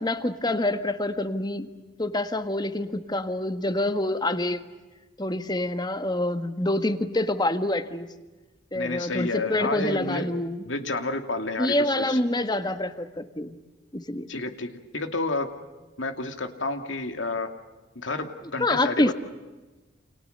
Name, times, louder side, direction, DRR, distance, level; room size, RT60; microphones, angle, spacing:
voice 1, 0.0-1.7 2.0-4.6 5.2-8.1 8.7-10.6 11.6-13.6 13.9-14.3 18.6-19.1, left 1 dB, 20° left, 10 dB, 1.6 m, -26 dB
voice 2, 8.7-10.3 10.6-12.2 14.3-15.5 16.0-17.5 18.0-19.1, left 2 dB, 80° left, 7 dB, 2.7 m, -30 dB
29.5 x 28.5 x 6.7 m, 1.2 s
head